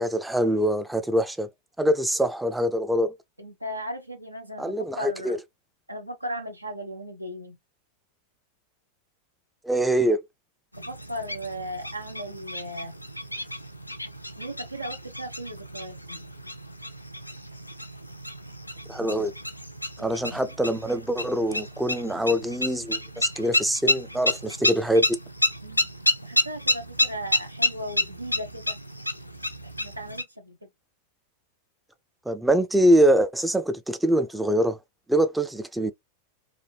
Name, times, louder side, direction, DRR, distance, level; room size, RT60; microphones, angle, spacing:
voice 1, 0.0-1.5 1.8-3.1 4.6-5.4 9.6-10.2 18.9-19.3 20.0-25.2 32.3-34.8 35.1-35.9, right 1 dB, 5° right, 0.4 m, -24 dB
voice 2, 3.4-5.4 5.9-7.6 10.8-12.9 14.4-16.3 20.0-20.4 25.6-25.9 26.2-28.8 29.8-30.6, equal, 85° right, 0.7 m, -37 dB
sound 1, 10.7-30.2, left 1 dB, 85° left, 0.4 m, -30 dB
3.2 x 2.6 x 2.4 m
figure-of-eight pair, 90°, 0 cm